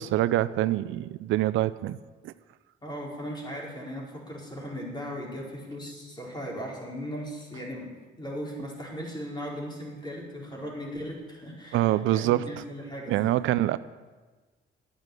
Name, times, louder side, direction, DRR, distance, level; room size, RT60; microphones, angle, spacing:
voice 1, 0.0-2.0 2.2-2.3 11.7-12.6 13.1-13.8, right 14 dB, 80° right, 16 dB, 0.5 m, -25 dB
voice 2, 2.8-7.9 8.2-13.4, equal, 20° left, -3 dB, 4.5 m, -37 dB
12.0 x 9.0 x 8.0 m, 1.3 s
cardioid pair, 90°, 20 cm